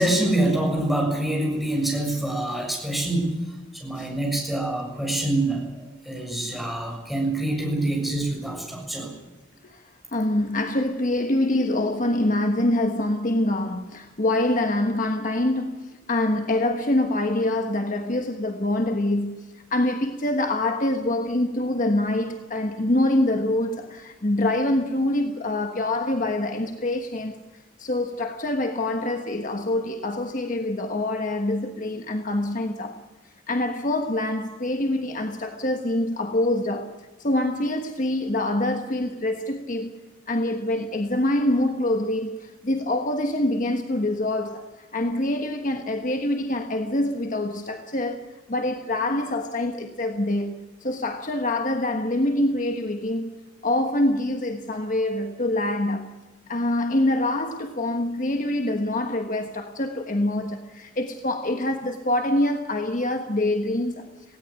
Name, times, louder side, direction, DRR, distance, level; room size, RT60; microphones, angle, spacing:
voice 1, 0.0-3.3 3.7-9.1, right 1 dB, ahead, 7.0 m, -25 dB
voice 2, 10.1-27.4 27.8-33.0 33.5-36.9 37.2-39.9 40.3-48.2 48.5-53.3 53.6-56.1 56.5-64.1, left 1 dB, 40° left, 1.3 m, -25 dB
19.0 x 17.0 x 10.0 m
head